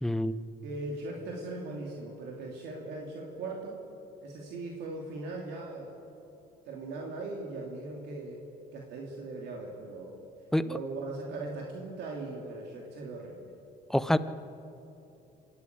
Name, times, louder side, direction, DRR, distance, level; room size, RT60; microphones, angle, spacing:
voice 1, 0.0-0.5 10.5-10.7 13.9-14.2, left 1 dB, ahead, 13 dB, 0.7 m, -26 dB
voice 2, 0.6-3.8 4.2-5.9 6.7-8.4 8.7-10.1 10.6-13.5, right 2 dB, 85° right, -1 dB, 2.9 m, -39 dB
25.5 x 12.0 x 9.6 m, 2.9 s
cardioid pair, 110°, 17 cm